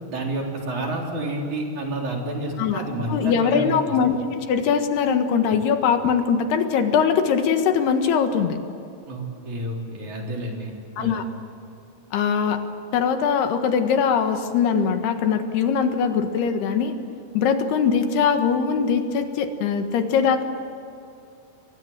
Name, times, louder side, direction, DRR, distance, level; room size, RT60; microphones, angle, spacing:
voice 1, 0.1-4.1 9.1-10.7 11.0-11.2, right 1 dB, 50° right, 0 dB, 5.1 m, -29 dB
voice 2, 3.1-8.6 11.0-11.2 12.1-12.6 12.9-17.0 17.4-20.4, left 6 dB, 80° left, 7 dB, 3.6 m, -21 dB
29.5 x 23.0 x 7.5 m, 2.6 s
omnidirectional pair, 4.6 m